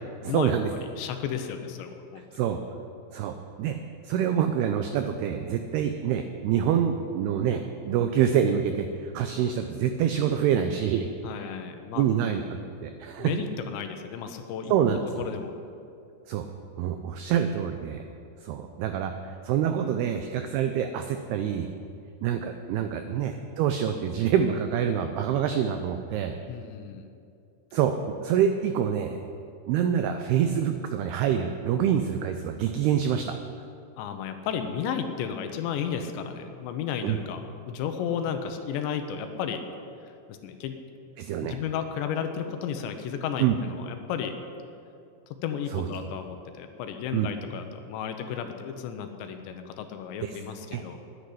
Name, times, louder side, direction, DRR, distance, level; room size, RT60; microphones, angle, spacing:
voice 1, 0.2-0.7 2.3-2.6 3.1-3.8 4.0-11.5 12.0-13.3 14.7-15.3 16.3-16.5 16.8-18.0 18.4-21.7 22.2-26.3 27.7-29.2 29.7-33.4 37.0-37.2 41.2-41.6 43.4-43.6 45.7-45.9 47.1-47.3 50.2-50.4 50.7-50.8, right 9 dB, 90° right, 7 dB, 2.2 m, -26 dB
voice 2, 1.0-2.2 11.2-12.0 13.2-14.7 15.2-15.6 23.1-23.2 26.5-27.1 34.0-39.6 40.3-40.8 41.4-44.3 45.3-51.0, left 8 dB, 80° left, 7 dB, 3.0 m, -33 dB
10.5 x 9.8 x 10.0 m, 2.5 s
omnidirectional pair, 5.4 m